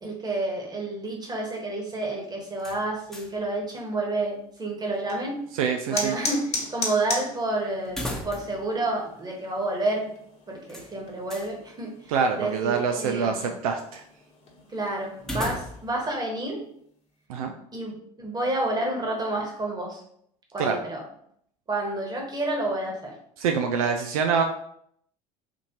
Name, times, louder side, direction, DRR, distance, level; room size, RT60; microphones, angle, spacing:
voice 1, 0.0-5.4 5.9-10.1 10.5-13.5 14.7-16.6 17.7-20.0 20.5-21.0 21.7-23.2, right 2 dB, 20° right, 0 dB, 1.3 m, -29 dB
sound 1, 2.6-3.5 3.8-3.9 7.8-8.7 9.0-9.1 10.7-11.5 15.2-16.0, left 1 dB, ahead, 0.9 m, -36 dB
sound 2, 4.9-16.1, left 3 dB, 35° left, 1.2 m, -38 dB
voice 2, 5.5-6.2 12.1-14.0 17.3-17.5 20.6-20.8 23.4-24.4, right 6 dB, 70° right, 4 dB, 0.4 m, -25 dB
4.2 x 2.8 x 2.9 m, 0.68 s
figure-of-eight pair, 65°, 19 cm